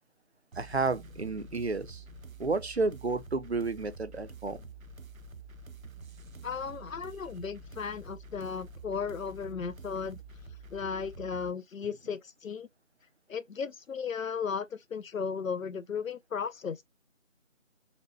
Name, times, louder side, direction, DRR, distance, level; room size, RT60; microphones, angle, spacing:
sound 1, 0.5-11.5, right 3 dB, 85° right, 0.7 m, -48 dB
voice 1, 0.6-2.0 2.4-4.7, right 3 dB, 55° right, 0.5 m, -31 dB
voice 2, 6.4-10.2 10.7-12.7 13.3-16.8, left 6 dB, 80° left, 0.5 m, -35 dB
4.0 x 2.1 x 3.1 m
figure-of-eight pair, 175°, 40 cm